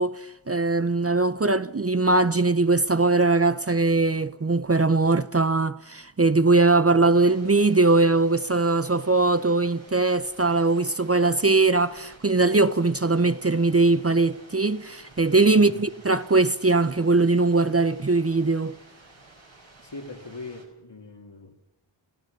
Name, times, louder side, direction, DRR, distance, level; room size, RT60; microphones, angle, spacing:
voice 1, 0.0-18.8, right 3 dB, 30° right, 0.7 m, -21 dB
sound 1, 7.1-20.6, right 2 dB, 75° right, 4.3 m, -52 dB
voice 2, 15.5-15.9 19.8-21.7, left 3 dB, 60° left, 2.6 m, -41 dB
29.0 x 15.0 x 6.6 m
wide cardioid pair, 45°, 47 cm